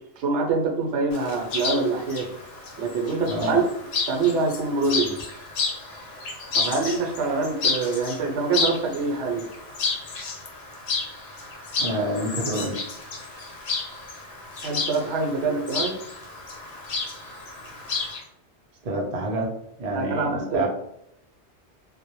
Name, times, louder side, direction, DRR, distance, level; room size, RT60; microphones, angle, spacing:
voice 1, 0.2-2.3 2.8-3.6 4.1-5.2 6.5-9.5 14.6-15.9 19.9-20.7, right 4 dB, 75° right, 1 dB, 0.8 m, -25 dB
Chirp tweet, 1.1-18.2, left 4 dB, 75° left, 0.8 m, -31 dB
voice 2, 11.8-12.7 18.8-19.5 19.8-20.7, right 1 dB, 45° right, -1 dB, 0.5 m, -27 dB
2.1 x 2.0 x 2.9 m, 0.78 s
omnidirectional pair, 1.2 m